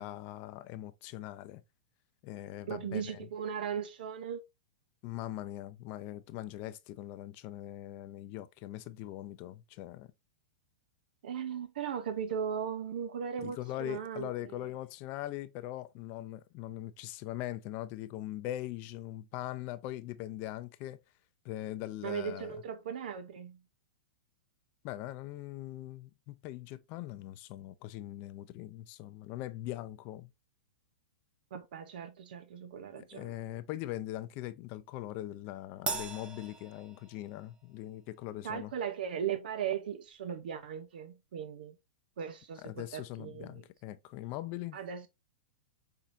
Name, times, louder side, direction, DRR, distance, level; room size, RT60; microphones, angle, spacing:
voice 1, 0.0-1.6 2.2-3.3 5.0-10.1 13.4-21.0 21.4-22.6 24.8-30.3 33.1-38.7 42.6-44.8, left 14 dB, 40° left, 0.5 m, -41 dB
voice 2, 2.7-4.4 11.2-14.6 22.0-23.6 31.5-33.3 38.4-41.7 42.2-43.6 44.7-45.1, right 8 dB, 70° right, 0.7 m, -38 dB
Crash cymbal, 35.9-37.5, right 5 dB, 15° right, 0.6 m, -39 dB
5.7 x 3.6 x 2.6 m
hypercardioid pair, 145°, 5 cm